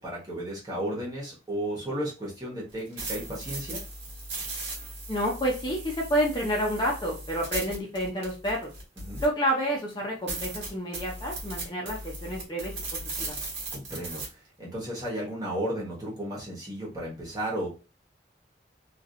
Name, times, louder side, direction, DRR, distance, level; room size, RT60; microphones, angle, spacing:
voice 1, 0.0-3.8 9.0-9.2 13.7-14.2 14.6-17.7, right 1 dB, 20° right, -4 dB, 1.4 m, -34 dB
sound 1, 2.7-9.5 9.9-10.0 10.3-14.3, right 2 dB, 80° right, 1.6 m, -37 dB
voice 2, 5.1-8.7 9.2-13.4, equal, 25° left, -2 dB, 0.7 m, -29 dB
2.9 x 2.9 x 2.6 m, 0.31 s
head